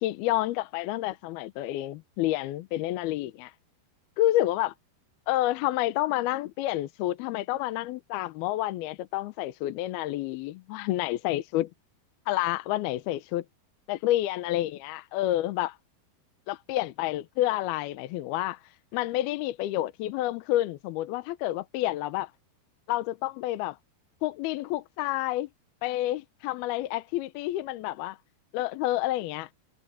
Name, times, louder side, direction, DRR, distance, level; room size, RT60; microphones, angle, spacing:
voice 1, 0.0-3.5 4.2-4.7 5.3-11.7 12.3-13.4 13.9-15.8 16.5-18.6 18.9-22.3 22.9-23.8 24.2-25.5 25.8-28.2 28.5-29.5, left 15 dB, 75° left, 2.6 m, -29 dB
omnidirectional pair, 5.0 m